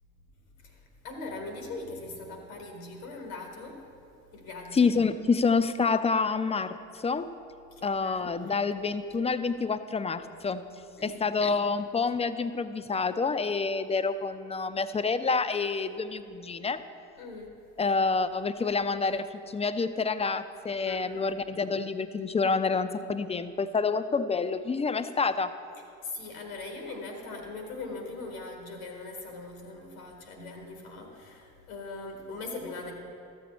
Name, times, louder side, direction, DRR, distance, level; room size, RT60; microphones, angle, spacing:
voice 1, 0.6-3.8 4.3-4.9 7.7-8.3 11.0-11.4 17.2-17.5 20.8-21.3 26.0-32.9, left 3 dB, 85° left, 2 dB, 1.5 m, -40 dB
voice 2, 4.7-7.3 7.8-10.6 11.0-16.8 17.8-25.5, left 4 dB, 15° left, 12 dB, 0.5 m, -28 dB
13.5 x 7.1 x 4.2 m, 2.6 s
hypercardioid pair, 45°, 41 cm